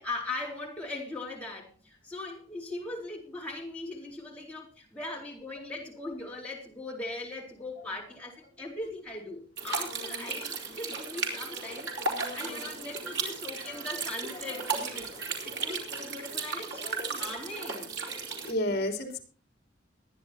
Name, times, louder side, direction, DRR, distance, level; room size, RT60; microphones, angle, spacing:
voice 1, 0.0-15.1 15.4-17.9, left 2 dB, 5° left, -3 dB, 4.0 m, -40 dB
sound 1, 9.6-18.5, right 4 dB, 65° right, 4.2 m, -35 dB
voice 2, 16.8-17.2 18.4-19.2, left 1 dB, 55° left, 3 dB, 3.5 m, -33 dB
22.0 x 10.5 x 2.9 m, 0.41 s
head